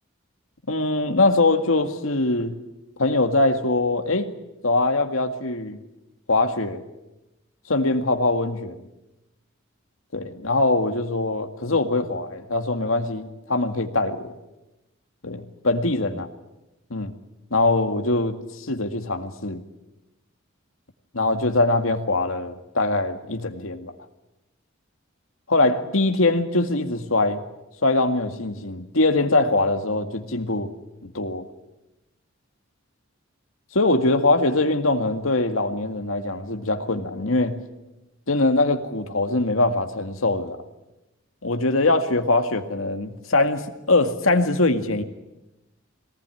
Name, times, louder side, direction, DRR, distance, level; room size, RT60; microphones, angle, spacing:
voice 1, 0.7-2.6 3.0-4.3 4.6-5.8 6.3-6.8 7.7-8.8 10.1-14.3 15.2-16.3 16.9-17.1 17.5-19.6 21.1-23.9 25.5-27.4 27.8-30.7 31.0-31.4 33.7-37.6 38.3-40.6 41.4-45.0, left 2 dB, 85° left, 7 dB, 2.0 m, -22 dB
23.0 x 19.0 x 9.9 m, 0.98 s
head